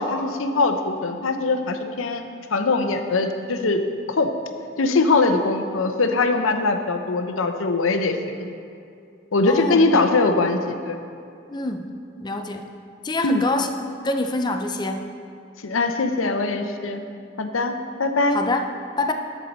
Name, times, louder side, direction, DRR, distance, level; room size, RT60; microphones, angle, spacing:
voice 1, 0.0-2.2 2.5-3.8 4.1-4.3 4.8-8.6 9.3-11.0 13.2-13.4 15.6-17.0 17.4-17.7 18.0-18.4, left 3 dB, 90° left, 6 dB, 0.7 m, -21 dB
voice 2, 9.5-10.0 11.5-11.9 12.2-12.7 13.0-13.7 14.0-15.1 18.3-18.7 19.0-19.1, left 2 dB, 20° left, 5 dB, 0.5 m, -26 dB
11.5 x 7.5 x 4.0 m, 2.4 s
head